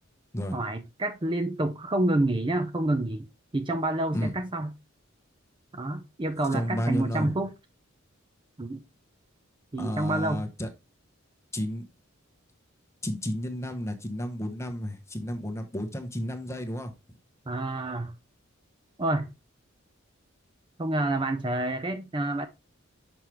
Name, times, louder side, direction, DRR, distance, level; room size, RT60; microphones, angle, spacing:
voice 1, 0.5-3.3 3.5-4.7 5.7-7.5 8.6-8.8 9.7-10.4 17.5-18.1 19.0-19.3 20.8-22.5, right 2 dB, 25° right, 0.5 m, -28 dB
voice 2, 6.5-7.3 9.8-10.7 11.5-11.8 13.0-16.9, equal, 15° left, 1.0 m, -32 dB
6.0 x 5.5 x 3.2 m
head